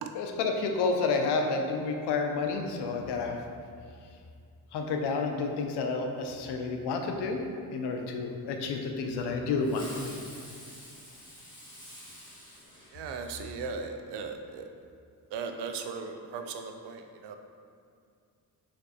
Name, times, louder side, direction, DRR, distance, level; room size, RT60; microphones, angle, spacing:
voice 1, 0.1-3.4 4.7-7.4 7.7-10.2, left 4 dB, 80° left, 3 dB, 0.6 m, -30 dB
Fireworks, 9.6-13.5, equal, 10° left, 1.4 m, -48 dB
voice 2, 12.9-14.6 15.3-17.4, right 5 dB, 85° right, 5 dB, 0.5 m, -37 dB
3.4 x 3.3 x 4.1 m, 2.3 s
cardioid pair, 75°, 40 cm